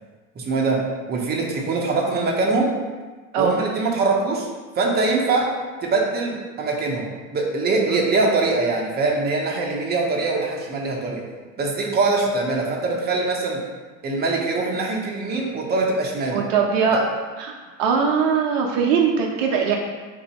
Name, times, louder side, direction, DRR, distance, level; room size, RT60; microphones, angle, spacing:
voice 1, 0.4-0.8 1.1-2.7 3.3-4.5 4.8-5.5 5.8-7.1 7.3-11.2 11.6-13.6 14.0-16.4, right 3 dB, 25° right, -1 dB, 0.7 m, -23 dB
voice 2, 16.3-17.0 17.4-17.5 17.8-19.8, right 6 dB, 65° right, 1 dB, 0.6 m, -20 dB
2.7 x 2.6 x 4.0 m, 1.3 s
hypercardioid pair, 85°, 41 cm